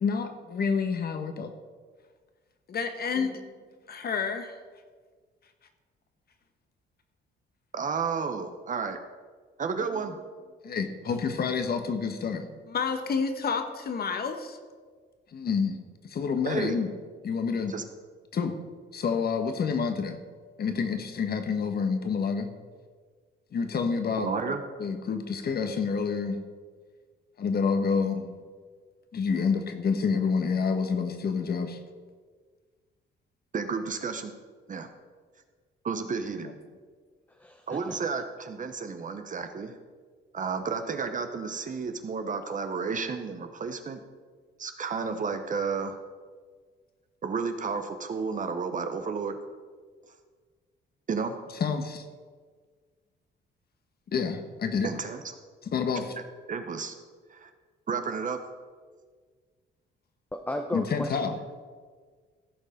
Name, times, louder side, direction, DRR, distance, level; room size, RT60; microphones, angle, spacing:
voice 1, 0.0-1.5 2.7-3.5 3.9-4.5 10.6-14.6 15.3-16.9 17.2-17.7 18.3-18.6 18.9-20.2 20.6-22.5 23.5-24.3 24.8-26.4 27.4-28.4 29.1-31.8 36.4-36.5 51.6-52.0 54.1-54.9 55.6-56.1 60.7-61.4, left 5 dB, 50° left, 7 dB, 1.2 m, -28 dB
voice 2, 7.7-9.0 9.6-10.2 16.5-16.8 17.7-17.8 24.2-24.6 33.5-34.3 34.7-34.9 35.8-36.5 37.7-39.7 40.3-44.0 44.6-46.0 47.2-49.4 51.1-51.3 54.8-55.2 56.5-56.9 57.3-57.5 57.9-58.4, right 5 dB, 40° right, 7 dB, 0.8 m, -32 dB
voice 3, 37.4-38.0 60.3-61.2, left 1 dB, 10° left, 4 dB, 0.7 m, -34 dB
15.0 x 5.3 x 5.1 m, 1.6 s
cardioid pair, 90°, 20 cm